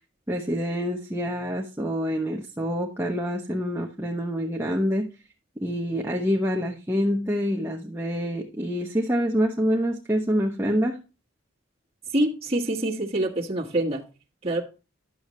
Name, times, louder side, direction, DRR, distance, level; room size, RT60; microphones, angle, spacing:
voice 1, 0.3-5.1 5.6-11.0, equal, 10° right, 0.9 m, -26 dB
voice 2, 12.1-14.0 14.4-14.6, right 1 dB, 30° right, 1.7 m, -25 dB
11.0 x 7.1 x 3.1 m
head